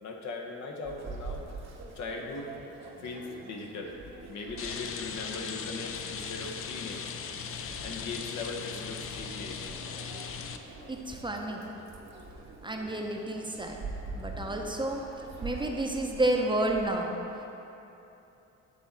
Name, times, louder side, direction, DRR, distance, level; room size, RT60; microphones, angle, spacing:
voice 1, 0.0-1.5 1.9-2.5 3.0-3.9 4.3-7.1 7.8-9.6, left 3 dB, 70° left, 1 dB, 0.9 m, -39 dB
sound 1, 0.8-16.9, right 3 dB, 60° right, 1.0 m, -45 dB
Rain, 4.6-10.6, left 7 dB, 50° left, 0.4 m, -39 dB
voice 2, 10.9-11.6 12.6-13.8 14.1-15.0 15.4-17.1, right 1 dB, 15° right, 1 dB, 0.6 m, -30 dB
8.4 x 4.1 x 4.0 m, 2.9 s
cardioid pair, 90°, 30 cm